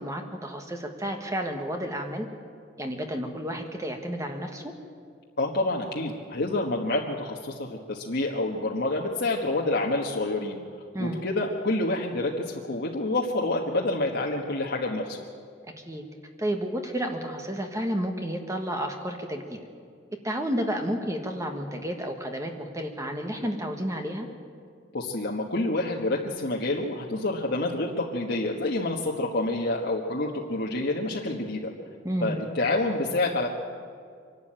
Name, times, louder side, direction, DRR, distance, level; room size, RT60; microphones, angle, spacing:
voice 1, 0.0-2.3 2.8-4.7 10.9-11.2 15.8-16.0 16.4-19.6 20.2-24.3 32.0-32.4, equal, 15° right, 4 dB, 1.4 m, -31 dB
voice 2, 5.4-10.6 11.0-15.2 24.9-31.7 32.2-33.5, left 2 dB, 60° left, -1 dB, 1.4 m, -28 dB
24.5 x 12.0 x 8.9 m, 2.2 s
head